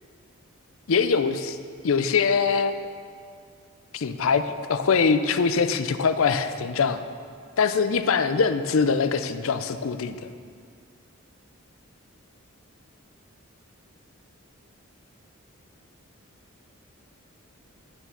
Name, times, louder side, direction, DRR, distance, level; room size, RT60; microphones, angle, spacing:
voice 1, 0.9-1.6 1.8-2.9 3.9-4.4 4.7-7.0 7.6-10.3, left 5 dB, 70° left, 11 dB, 0.5 m, -23 dB
9.0 x 6.8 x 5.9 m, 2.2 s
head